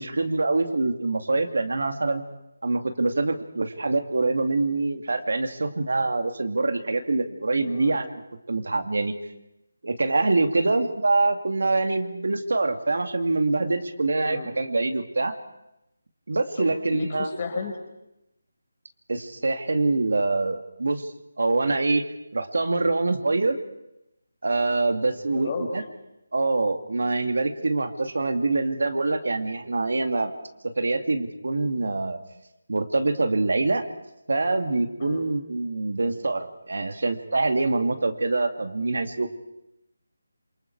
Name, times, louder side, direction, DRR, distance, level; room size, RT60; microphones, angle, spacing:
voice 1, 0.0-2.2 2.6-8.1 8.5-9.1 9.8-15.3 16.3-17.3 19.1-21.1 21.4-22.0 22.3-23.6 24.4-25.8 26.3-30.3 30.8-32.2 32.7-33.8 34.3-39.3, right 3 dB, 70° right, 6 dB, 2.4 m, -25 dB
voice 2, 7.6-8.0 14.2-14.5 16.5-17.8 25.3-25.8 35.0-35.3, left 4 dB, 30° left, 4 dB, 5.1 m, -34 dB
28.0 x 27.5 x 4.7 m, 0.89 s
figure-of-eight pair, 170°, 0 cm